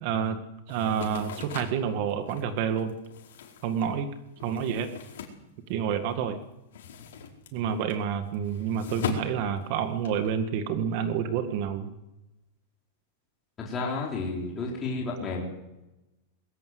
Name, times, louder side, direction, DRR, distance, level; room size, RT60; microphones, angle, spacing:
voice 1, 0.0-0.4 0.7-2.9 3.6-4.1 4.4-4.9 5.7-6.4 7.5-11.9, right 7 dB, 40° right, 8 dB, 2.0 m, -28 dB
sound 1, 0.7-6.1 6.4-10.3, left 6 dB, 80° left, 4.8 m, -40 dB
voice 2, 13.6-15.4, left 3 dB, 20° left, -2 dB, 4.0 m, -31 dB
21.0 x 17.5 x 8.0 m, 0.96 s
supercardioid pair, 170°, 0 cm